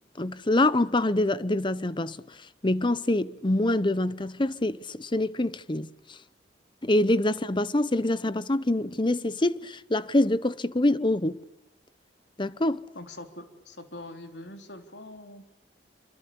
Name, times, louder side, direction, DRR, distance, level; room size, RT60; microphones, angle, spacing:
voice 1, 0.2-2.4 2.6-6.2 6.8-11.4 12.4-12.8, left 1 dB, 25° left, 0.9 m, -25 dB
voice 2, 13.0-15.5, left 1 dB, 75° left, 4.0 m, -43 dB
26.5 x 25.5 x 8.7 m
head